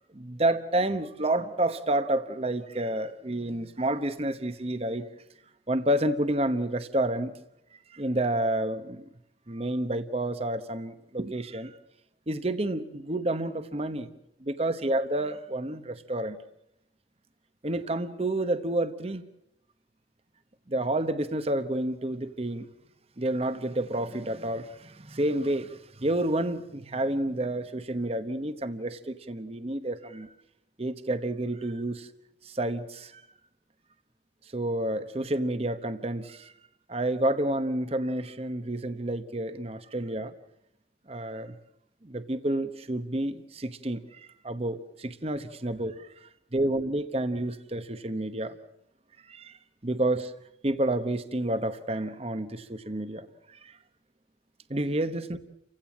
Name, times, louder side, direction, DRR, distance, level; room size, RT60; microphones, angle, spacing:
voice 1, 0.1-5.1 5.7-7.3 7.7-9.1 9.5-11.8 12.3-14.1 14.4-16.4 17.6-19.2 20.7-22.7 23.2-30.3 30.8-32.1 32.4-33.2 34.5-36.5 36.9-40.3 41.1-41.5 42.0-45.9 46.5-48.6 49.3-49.6 49.8-50.3 50.6-53.8 54.7-55.4, right 1 dB, 35° right, 1.0 m, -29 dB
30.0 x 16.5 x 7.4 m
head